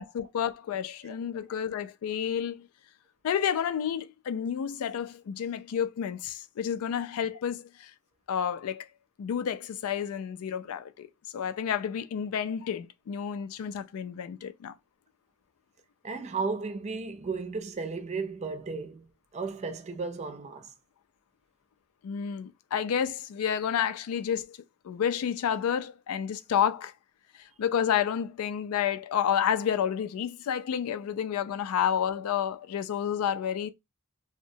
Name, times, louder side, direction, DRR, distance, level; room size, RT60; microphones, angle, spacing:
voice 1, 0.0-2.7 3.2-7.9 8.3-8.8 9.2-11.1 11.3-14.7 22.0-24.6 24.8-26.9 27.3-33.7, left 8 dB, 80° left, 0.3 m, -30 dB
voice 2, 16.0-19.1 19.3-20.7, right 4 dB, 30° right, 0.4 m, -34 dB
2.7 x 2.1 x 2.6 m
head